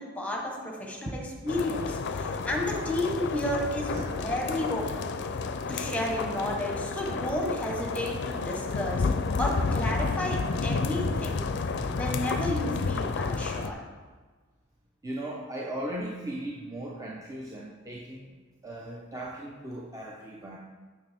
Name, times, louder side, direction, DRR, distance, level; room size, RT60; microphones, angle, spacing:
voice 1, 0.0-5.1 5.7-9.1 9.4-11.5 11.9-13.8, left 1 dB, 5° left, 0 dB, 1.2 m, -32 dB
sound 1, 1.5-13.7, left 4 dB, 60° left, 0.4 m, -31 dB
voice 2, 3.9-4.4 7.1-7.2 11.7-11.9 15.0-18.3 18.6-20.6, right 1 dB, 15° right, -3 dB, 0.6 m, -38 dB
8.4 x 6.7 x 3.5 m, 1.4 s
head